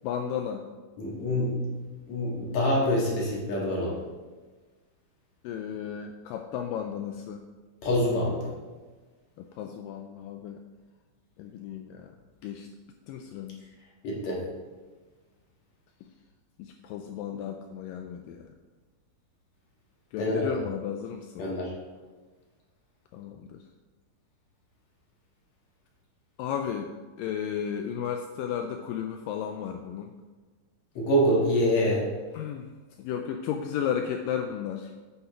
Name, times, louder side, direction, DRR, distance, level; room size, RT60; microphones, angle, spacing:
voice 1, 0.0-0.6 5.4-7.4 9.4-10.6 11.4-12.1 12.4-12.7 13.1-13.6 16.6-18.5 20.1-21.5 23.1-23.6 26.4-26.9 27.2-30.2 32.3-34.9, left 8 dB, 90° left, 5 dB, 1.9 m, -34 dB
voice 2, 1.0-1.6 2.1-4.0 7.8-8.5 14.0-14.4 20.2-20.4 21.4-21.7 30.9-32.1, equal, 50° left, -3 dB, 2.9 m, -25 dB
8.8 x 8.3 x 3.8 m, 1.4 s
omnidirectional pair, 4.5 m